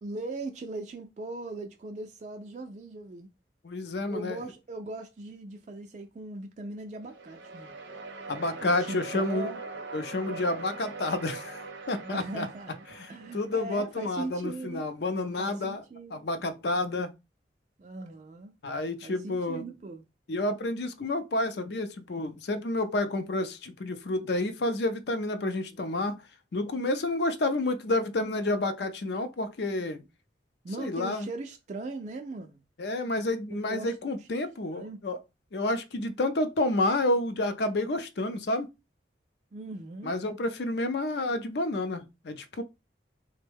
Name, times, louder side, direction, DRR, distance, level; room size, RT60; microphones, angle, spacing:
voice 1, 0.0-3.3 4.1-7.7 8.6-9.6 12.0-14.9 15.4-16.3 17.8-18.5 19.0-20.1 30.6-32.6 33.5-34.3 34.7-35.0 39.5-40.1, right 2 dB, 40° right, 0.3 m, -39 dB
voice 2, 3.6-4.4 8.3-9.5 9.9-12.5 13.0-15.8 16.1-17.1 18.6-19.6 20.3-26.2 26.5-30.0 30.8-31.3 32.8-35.2 35.5-38.7 40.0-42.6, left 2 dB, 65° left, 0.5 m, -30 dB
sound 1, 7.0-14.0, right 3 dB, 75° right, 0.7 m, -42 dB
3.4 x 2.1 x 3.4 m
head